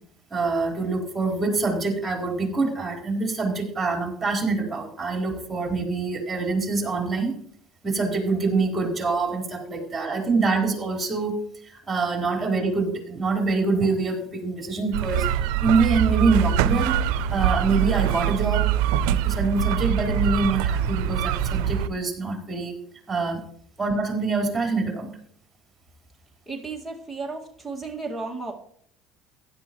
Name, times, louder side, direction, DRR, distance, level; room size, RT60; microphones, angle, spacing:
voice 1, 0.3-7.3 7.8-11.4 11.9-15.3 15.6-18.7 19.1-22.7 23.1-23.4 23.8-25.1, right 3 dB, 20° right, 1 dB, 4.5 m, -25 dB
sound 1, 14.9-21.9, right 10 dB, 80° right, 0.6 m, -23 dB
voice 2, 26.5-28.5, right 3 dB, ahead, 3 dB, 2.1 m, -34 dB
15.5 x 11.0 x 3.1 m, 0.62 s
supercardioid pair, 100°, 0 cm